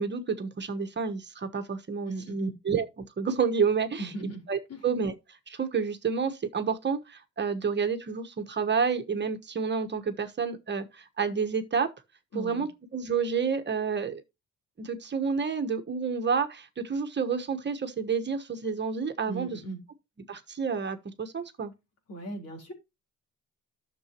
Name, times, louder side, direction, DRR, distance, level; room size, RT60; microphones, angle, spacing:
voice 1, 0.0-2.9 3.2-4.1 4.5-5.1 5.5-11.9 12.3-14.2 14.8-19.6 20.3-21.7, right 5 dB, 35° right, 1.3 m, -29 dB
voice 2, 2.1-2.5 4.0-4.4 4.7-4.8 12.3-12.7 19.3-19.8 22.1-22.7, right 2 dB, 55° left, 4.0 m, -37 dB
11.5 x 7.0 x 2.9 m
cardioid pair, 90°, 30 cm